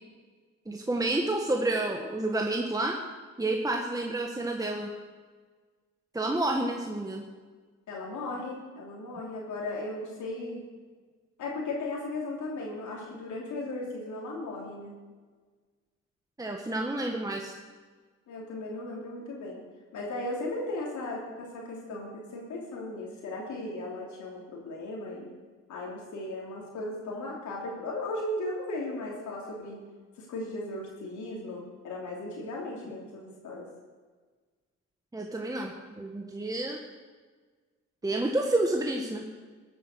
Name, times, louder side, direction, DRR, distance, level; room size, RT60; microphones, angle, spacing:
voice 1, 0.7-3.0 3.4-4.9 6.1-7.3 16.4-17.5 35.1-36.8 38.0-39.2, right 2 dB, 10° right, 1 dB, 1.4 m, -29 dB
voice 2, 7.9-10.6 11.4-14.9 18.3-19.6 19.9-25.3 25.7-29.8 30.2-33.7, left 2 dB, 75° left, -2 dB, 3.1 m, -36 dB
15.0 x 8.5 x 6.6 m, 1.4 s
cardioid pair, 90°, 30 cm